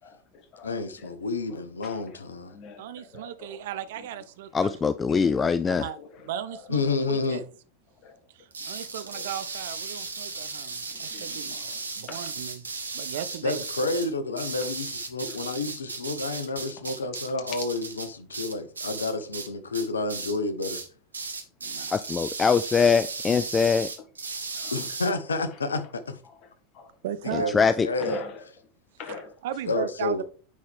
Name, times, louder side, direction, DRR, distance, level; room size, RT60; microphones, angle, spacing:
voice 1, 0.0-1.2 1.5-2.2 2.5-3.6 4.0-4.1 5.1-6.7 8.0-8.2 9.0-9.3 10.3-10.5 10.9-11.8 12.1-12.3 13.1-13.3 13.9-14.0 15.3-15.4 21.8-22.1 24.5-24.8 25.5-25.9 26.2-26.5 26.7-26.9 28.0-28.5 29.0-29.4 30.1-30.2, left 5 dB, 45° left, 1.7 m, -45 dB
voice 2, 0.6-2.6 6.7-7.4 13.4-20.8 24.7-26.2 27.2-28.2 29.7-30.2, left 3 dB, 80° left, 0.9 m, -30 dB
voice 3, 2.8-4.8 5.6-6.0 6.3-7.4 8.3-11.6 12.0-12.6 12.9-13.6 21.6-21.9 27.0-27.6 29.4-30.2, right 10 dB, 65° right, 0.6 m, -36 dB
voice 4, 4.5-5.9 21.9-23.9 27.3-27.9, left 5 dB, 20° left, 0.3 m, -23 dB
sound 1, 8.5-19.5 19.7-20.4 20.6-20.9 21.1-25.1, right 4 dB, 85° right, 1.0 m, -36 dB
9.5 x 4.3 x 3.5 m
figure-of-eight pair, 85°, 0 cm